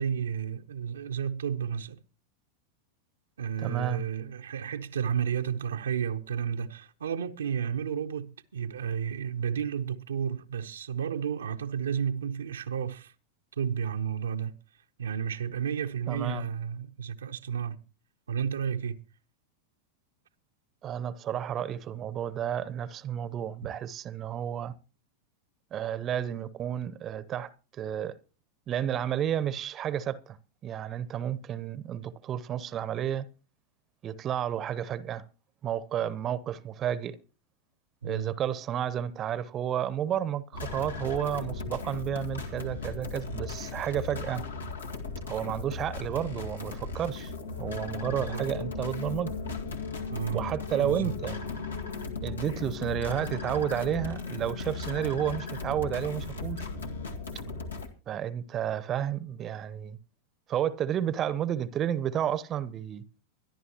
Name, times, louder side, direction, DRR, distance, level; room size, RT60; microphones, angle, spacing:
voice 1, 0.0-2.0 3.4-13.1 13.6-14.5 15.0-17.8 18.3-19.0 38.0-38.3 48.0-48.5 50.1-50.4 50.8-51.1, right 7 dB, 65° right, 0.8 m, -32 dB
voice 2, 3.6-4.0 16.1-16.4 20.8-24.7 25.7-27.5 27.8-28.2 28.7-30.4 30.6-33.3 34.0-35.2 35.6-37.2 38.0-44.4 45.3-47.3 47.6-49.3 50.3-51.4 52.2-56.7 58.1-60.0 60.5-63.0, right 10 dB, 30° right, 0.9 m, -31 dB
sound 1, 40.5-57.9, left 4 dB, 75° left, 1.9 m, -36 dB
24.0 x 11.0 x 2.9 m
figure-of-eight pair, 90°, 0 cm